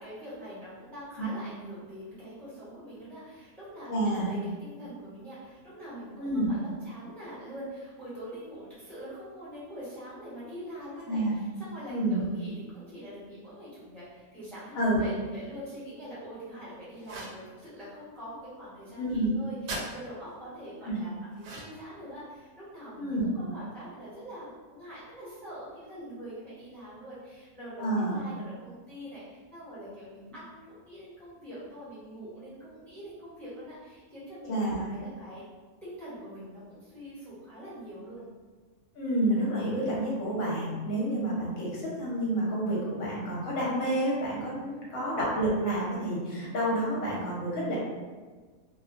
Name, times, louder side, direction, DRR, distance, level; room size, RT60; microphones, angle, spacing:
voice 1, 0.0-35.4 35.8-38.3 44.7-44.8, equal, ahead, -11 dB, 0.8 m, -44 dB
voice 2, 3.9-4.3 6.2-6.5 11.1-11.4 11.9-12.3 14.7-15.0 19.0-19.3 20.8-21.0 23.0-23.3 27.8-28.2 34.5-34.7 39.0-47.8, right 1 dB, 55° left, -5 dB, 1.1 m, -29 dB
sound 1, 17.0-17.4 19.7-19.9 21.4-21.9, right 2 dB, 90° right, 1.2 m, -38 dB
2.8 x 2.3 x 2.5 m, 1.4 s
omnidirectional pair, 1.6 m